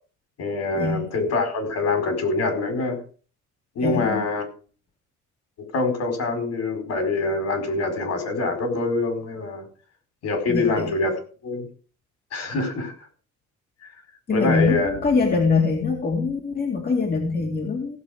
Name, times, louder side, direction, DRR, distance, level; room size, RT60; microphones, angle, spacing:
voice 1, 0.4-3.0 3.7-4.5 5.7-9.6 10.2-11.6 12.3-12.9 14.3-15.0, left 3 dB, 60° left, 6 dB, 4.7 m, -25 dB
voice 2, 3.8-4.2 10.5-10.9 14.3-18.0, left 4 dB, 30° left, 1 dB, 2.3 m, -23 dB
16.0 x 7.6 x 5.0 m, 0.40 s
cardioid pair, 150°, 30 cm